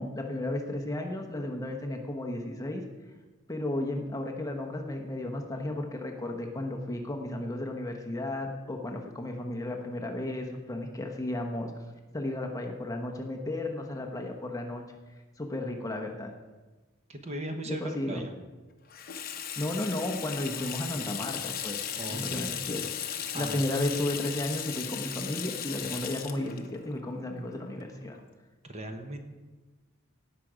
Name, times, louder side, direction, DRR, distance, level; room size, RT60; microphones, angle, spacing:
voice 1, 0.0-2.8 3.5-11.7 12.1-14.8 15.4-16.3 17.7-18.2 19.6-21.8 22.1-22.8 23.3-28.2, left 1 dB, 15° left, 2 dB, 0.9 m, -33 dB
voice 2, 17.1-18.3 22.0-22.6 23.3-24.0 25.8-25.9 28.6-29.2, right 1 dB, 30° right, 5 dB, 1.0 m, -39 dB
Water tap faucet / Sink (filling or washing), 18.9-28.2, left 9 dB, 45° left, 0.8 m, -37 dB
17.0 x 6.0 x 5.0 m, 1.2 s
head